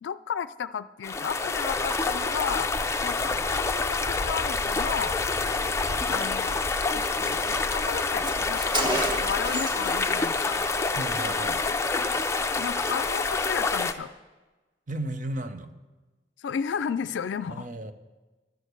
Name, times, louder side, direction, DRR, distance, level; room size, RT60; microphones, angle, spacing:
voice 1, 0.0-2.7 3.0-5.2 6.1-6.6 7.0-10.7 12.6-14.1 16.4-17.7, left 7 dB, 85° left, 13 dB, 0.3 m, -33 dB
sound 1, 1.0-13.9, left 3 dB, 15° left, 0.5 m, -27 dB
Car, 6.3-6.5 6.7-6.8 7.0-10.0 10.2-10.5, right 1 dB, 25° right, 1.1 m, -32 dB
voice 2, 10.9-11.6 14.9-15.7 17.5-17.9, right 1 dB, 45° right, 9 dB, 0.7 m, -34 dB
12.0 x 6.3 x 8.2 m, 1.2 s
head